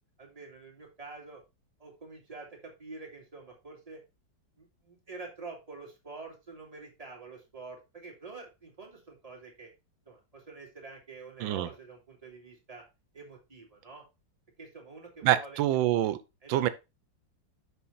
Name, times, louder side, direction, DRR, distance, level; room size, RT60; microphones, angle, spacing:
voice 1, 0.2-1.4 1.8-4.0 4.6-9.7 10.1-12.8 13.1-14.0 14.6-15.6 16.4-16.7, right 3 dB, 20° right, 2.6 m, -47 dB
voice 2, 15.2-16.2 16.5-16.7, right 13 dB, 90° right, 1.4 m, -26 dB
7.0 x 5.7 x 4.0 m
omnidirectional pair, 2.0 m